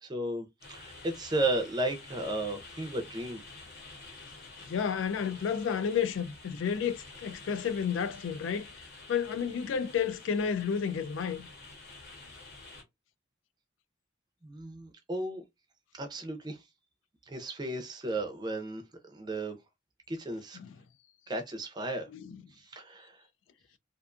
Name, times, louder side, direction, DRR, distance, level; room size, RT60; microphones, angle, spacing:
voice 1, 0.0-3.4 14.4-15.4 15.9-16.6 17.3-19.6 20.1-20.6 21.3-22.1 22.7-23.2, right 2 dB, 20° right, 0.5 m, -34 dB
sound 1, 0.6-12.8, left 3 dB, 55° left, 0.9 m, -49 dB
voice 2, 4.6-11.5 20.5-20.7 22.1-22.4, left 7 dB, 75° left, 0.3 m, -31 dB
2.4 x 2.3 x 2.4 m
head